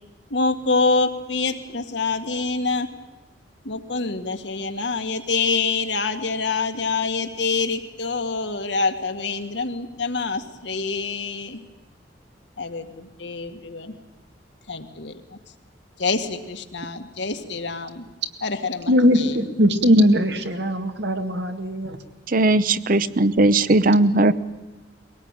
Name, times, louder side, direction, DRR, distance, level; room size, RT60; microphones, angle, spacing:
voice 1, 0.3-2.9 3.6-11.6 12.6-13.9 14.7-15.2 16.0-18.0 18.4-19.4, left 4 dB, 80° left, 7 dB, 1.9 m, -26 dB
voice 2, 18.9-22.0, equal, 70° right, 6 dB, 2.1 m, -19 dB
voice 3, 22.3-24.3, right 2 dB, 50° right, 15 dB, 0.8 m, -18 dB
22.5 x 18.0 x 9.0 m, 1.2 s
head